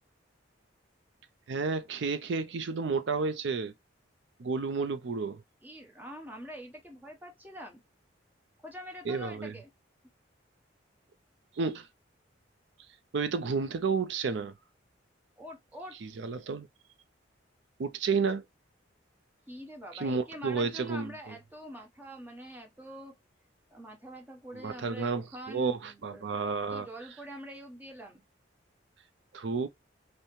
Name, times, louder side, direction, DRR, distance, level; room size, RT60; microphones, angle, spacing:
voice 1, 1.5-3.7 4.4-5.4 9.1-9.5 11.5-11.9 13.1-14.5 16.0-16.7 17.8-18.4 19.9-21.1 24.5-26.9 29.3-29.7, right 4 dB, 65° right, 0.4 m, -31 dB
voice 2, 5.6-7.8 8.6-9.7 15.4-16.0 19.5-23.2 23.7-28.2, equal, 10° right, 1.0 m, -45 dB
5.5 x 2.1 x 3.0 m
head